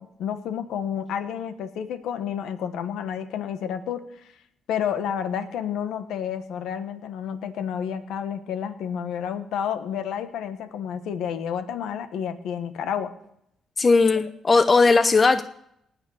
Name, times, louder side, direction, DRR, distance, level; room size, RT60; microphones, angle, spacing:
voice 1, 0.0-4.3 4.7-13.1, left 8 dB, 85° left, 9 dB, 1.4 m, -30 dB
voice 2, 13.8-15.4, left 4 dB, 30° left, 11 dB, 0.7 m, -18 dB
19.0 x 6.6 x 6.6 m, 0.72 s
cardioid pair, 90°, 0 cm